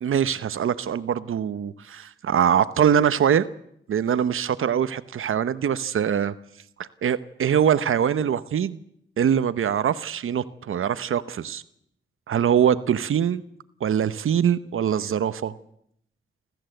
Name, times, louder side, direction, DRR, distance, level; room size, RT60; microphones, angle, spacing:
voice 1, 0.0-3.5 3.9-6.3 6.8-8.8 9.2-11.6 12.3-13.4 13.8-15.5, right 8 dB, 85° right, 0.9 m, -23 dB
27.5 x 14.0 x 7.9 m
cardioid pair, 75°, 21 cm